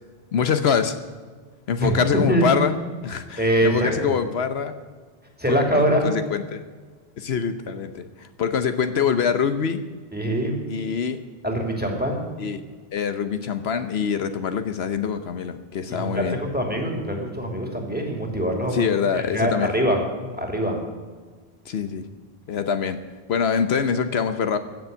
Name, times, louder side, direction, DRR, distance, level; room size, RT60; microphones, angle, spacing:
voice 1, 0.3-1.0 1.7-2.8 3.0-4.8 5.5-6.6 7.2-9.8 10.7-11.2 12.4-12.6 12.9-16.4 18.7-19.7 21.6-22.1 22.5-23.0 23.3-24.6, left 6 dB, 75° left, 10 dB, 1.1 m, -24 dB
voice 2, 3.4-3.9 5.4-6.0 10.1-10.6 11.4-12.2 15.9-18.9 19.1-20.0 20.4-20.8, right 1 dB, 10° right, 1 dB, 2.7 m, -23 dB
15.5 x 7.1 x 9.1 m, 1.5 s
omnidirectional pair, 1.1 m